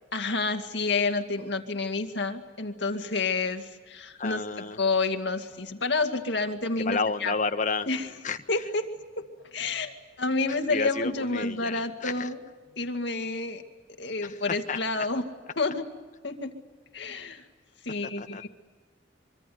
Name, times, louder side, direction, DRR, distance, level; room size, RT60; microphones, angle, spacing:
voice 1, 0.1-4.4 4.8-7.3 7.9-8.1 8.5-8.8 9.2-9.3 9.5-12.4 12.8-13.6 14.0-15.2 15.6-15.9 16.2-16.5 16.9-17.4 17.8-18.5, left 3 dB, 60° left, 6 dB, 2.2 m, -29 dB
voice 2, 4.2-4.8 6.8-7.9 8.2-8.4 10.7-12.3 14.2-14.4 14.7-15.1 18.2-18.5, left 4 dB, 40° left, 8 dB, 1.3 m, -31 dB
24.5 x 24.5 x 9.4 m, 1.3 s
head